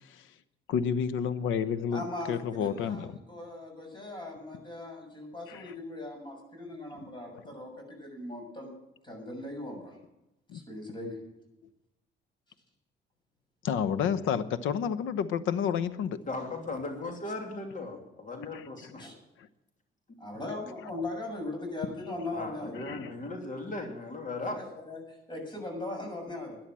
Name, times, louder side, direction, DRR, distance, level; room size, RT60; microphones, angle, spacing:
voice 1, 0.7-2.0 2.3-3.1 5.5-5.6 10.5-10.6 13.6-16.2 18.5-18.6 22.9-23.1, left 7 dB, 85° left, 14 dB, 1.0 m, -29 dB
voice 2, 1.9-8.7 9.0-10.0 10.5-11.2 19.0-19.2 20.2-22.7 24.3-26.6, left 2 dB, 25° left, 2 dB, 7.0 m, -39 dB
voice 3, 16.3-19.0 22.3-24.6, left 2 dB, 40° left, 3 dB, 3.1 m, -37 dB
13.0 x 10.5 x 7.6 m, 0.91 s
cardioid pair, 90°, 20 cm